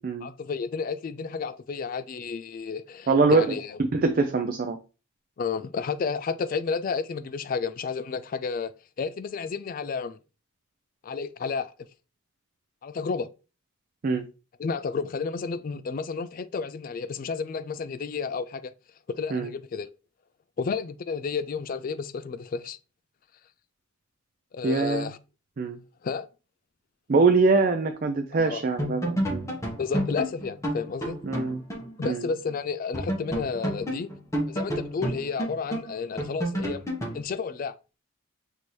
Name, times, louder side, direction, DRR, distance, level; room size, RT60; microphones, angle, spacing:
voice 1, 0.2-3.8 5.4-8.7 9.0-10.2 11.0-11.7 12.8-13.3 14.6-18.7 19.1-19.9 20.6-22.8 24.5-25.2 26.0-26.3 28.3-28.6 29.8-31.2 32.0-34.1 34.5-36.8 37.1-37.7, left 5 dB, 40° left, 0.3 m, -31 dB
voice 2, 3.1-3.5 3.9-4.8 14.0-14.3 19.3-19.5 24.6-25.1 25.6-25.8 27.1-29.5 31.2-31.6 32.0-32.2, right 4 dB, 45° right, 0.4 m, -23 dB
sound 1, 28.4-28.5 28.8-32.2 32.5-32.6 32.9-37.2, equal, 15° left, 1.0 m, -30 dB
6.2 x 2.7 x 3.1 m
head